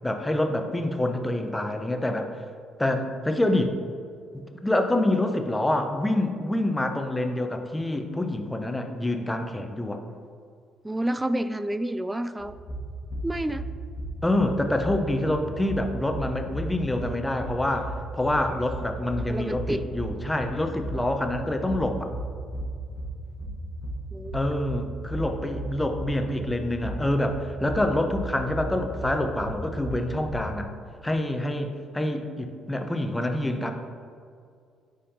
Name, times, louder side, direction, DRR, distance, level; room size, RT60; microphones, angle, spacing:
voice 1, 0.0-2.3 2.8-3.7 4.6-10.0 14.2-22.1 24.3-30.7 31.0-33.7, left 1 dB, 10° left, 6 dB, 0.7 m, -26 dB
voice 2, 10.8-12.6 13.2-13.7 19.3-19.8 24.1-24.4, right 1 dB, 10° right, 13 dB, 0.3 m, -29 dB
sound 1, 12.4-30.7, right 1 dB, 30° left, 1.3 m, -35 dB
9.7 x 4.9 x 2.8 m, 2.2 s
figure-of-eight pair, 45°, 0 cm